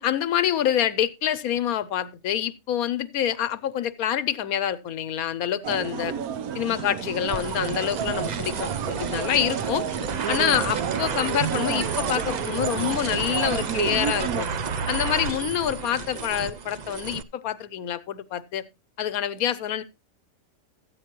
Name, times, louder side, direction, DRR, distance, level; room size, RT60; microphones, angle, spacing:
voice 1, 0.0-6.1 6.5-9.8 10.3-14.5 14.9-18.6 19.0-19.8, left 10 dB, 80° left, 1.2 m, -26 dB
sound 1, 5.6-14.4, right 8 dB, 80° right, 1.3 m, -31 dB
sound 2, 7.3-17.2, right 5 dB, 60° right, 0.4 m, -31 dB
13.5 x 8.7 x 2.9 m
omnidirectional pair, 1.5 m